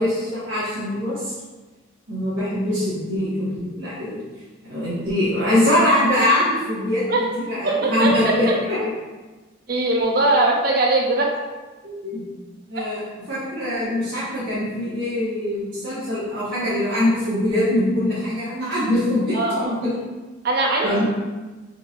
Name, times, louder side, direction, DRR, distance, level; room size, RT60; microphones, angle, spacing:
voice 1, 0.0-1.3 2.1-4.2 4.7-7.0 7.3-8.9 11.8-12.3 12.7-20.0 20.8-21.0, left 1 dB, 75° right, -11 dB, 1.1 m, -23 dB
voice 2, 7.6-8.6 9.7-11.3 12.8-12.9 19.3-19.8 20.4-21.0, right 2 dB, 50° right, 0 dB, 0.6 m, -21 dB
3.8 x 3.5 x 2.4 m, 1.2 s
head